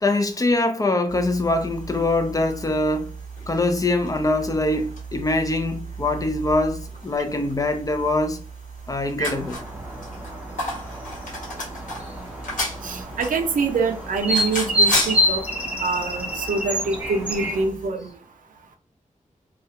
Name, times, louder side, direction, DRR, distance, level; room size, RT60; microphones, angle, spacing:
voice 1, 0.0-3.1 3.5-8.4 8.9-9.6, left 2 dB, 25° left, 0.4 m, -23 dB
sound 1, 1.1-17.9, equal, 75° left, 1.2 m, -34 dB
sound 2, 9.2-17.6, equal, 10° right, 0.7 m, -28 dB
voice 2, 12.8-15.4 15.8-18.1, right 4 dB, 85° right, 0.5 m, -25 dB
2.3 x 2.0 x 2.7 m
wide cardioid pair, 105°, 14 cm